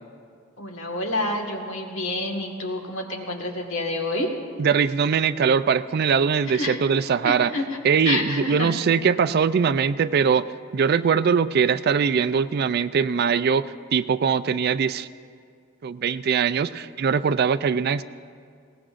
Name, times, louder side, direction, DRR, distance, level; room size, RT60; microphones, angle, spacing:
voice 1, 0.6-4.3 6.5-6.8 7.2-7.6 8.0-8.7, left 2 dB, 70° left, 1 dB, 1.7 m, -28 dB
voice 2, 4.6-7.5 7.8-15.1 15.8-18.0, right 6 dB, 50° right, 14 dB, 0.3 m, -22 dB
21.0 x 18.0 x 2.5 m, 2.2 s
head